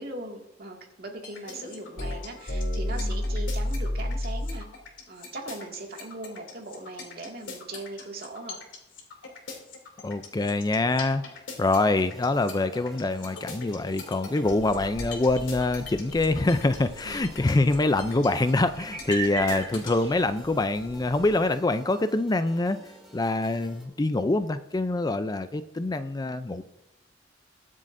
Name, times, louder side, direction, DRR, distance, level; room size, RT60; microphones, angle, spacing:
voice 1, 0.0-4.7 5.1-8.6 17.0-17.3, right 2 dB, 55° right, 1 dB, 2.1 m, -39 dB
sound 1, 1.2-19.9, left 1 dB, 80° left, 2.8 m, -33 dB
voice 2, 10.0-11.2 11.6-22.8 23.1-26.6, left 2 dB, 20° left, 11 dB, 0.4 m, -25 dB
sound 2, 11.5-23.9, equal, ahead, 3.6 m, -51 dB
sound 3, 14.5-21.5, right 3 dB, 35° right, 1.2 m, -39 dB
22.0 x 7.5 x 2.6 m, 0.87 s
head